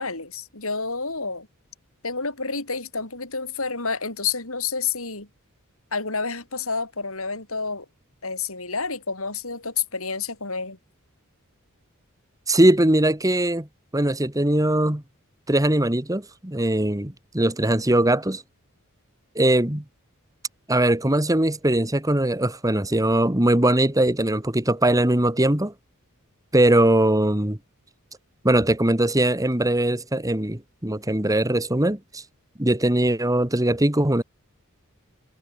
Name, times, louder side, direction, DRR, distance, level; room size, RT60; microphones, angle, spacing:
voice 1, 0.0-1.5 2.0-5.3 5.9-7.9 8.2-10.8, left 5 dB, 65° left, 7.2 m, -29 dB
voice 2, 12.5-13.7 13.9-15.0 15.5-18.4 19.4-19.8 20.7-25.7 26.5-27.6 28.4-32.2 32.6-34.2, right 1 dB, 15° right, 1.8 m, -21 dB
head